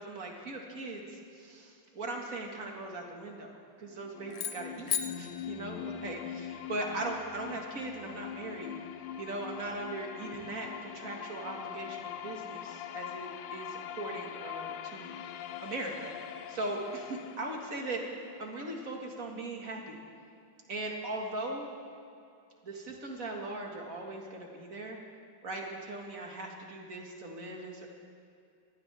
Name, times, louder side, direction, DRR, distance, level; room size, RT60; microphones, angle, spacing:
voice 1, 0.0-8.7 9.2-15.1 15.6-16.1 16.5-18.0 18.4-20.0 20.7-21.7 22.6-25.0 25.4-27.9, right 2 dB, 50° right, 0 dB, 2.4 m, -39 dB
sound 1, 3.8-19.8, left 10 dB, 85° left, 1.3 m, -43 dB
sound 2, 4.3-6.6, left 9 dB, 55° left, 0.7 m, -37 dB
23.0 x 17.0 x 3.6 m, 2.4 s
omnidirectional pair, 1.9 m